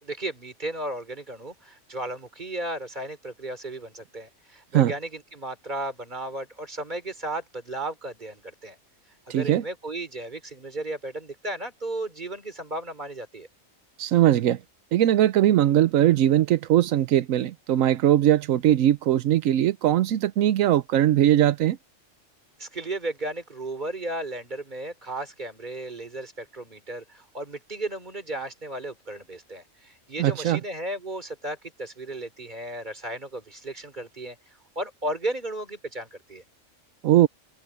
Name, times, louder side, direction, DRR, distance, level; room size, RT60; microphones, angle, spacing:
voice 1, 0.0-8.8 9.3-13.5 22.6-34.4 34.8-36.4, right 1 dB, 35° right, 3.5 m, -34 dB
voice 2, 9.3-9.6 14.0-14.6 14.9-21.8 30.2-30.6 37.0-37.3, right 12 dB, 85° right, 1.1 m, -20 dB
omnidirectional pair, 1.3 m